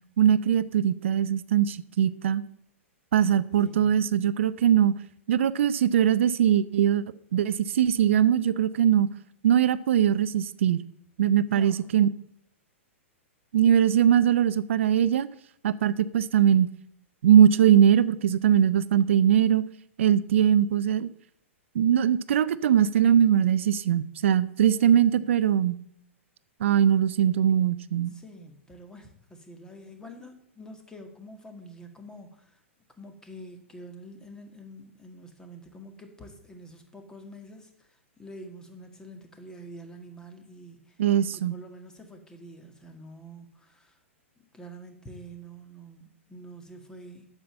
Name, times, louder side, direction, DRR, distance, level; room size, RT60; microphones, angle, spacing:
voice 1, 0.2-2.4 3.1-4.9 5.3-7.0 7.3-9.1 9.4-10.8 11.2-12.1 13.5-15.3 15.6-16.7 17.2-19.6 20.0-21.1 21.7-25.8 26.6-28.2 41.0-41.6, right 9 dB, 65° right, 16 dB, 0.5 m, -21 dB
voice 2, 3.6-4.0 11.5-11.9 24.7-25.4 28.1-32.6 33.0-41.0 41.3-44.0 44.4-47.3, equal, 10° left, 5 dB, 1.9 m, -47 dB
8.7 x 7.0 x 7.7 m, 0.71 s
hypercardioid pair, 110°, 7 cm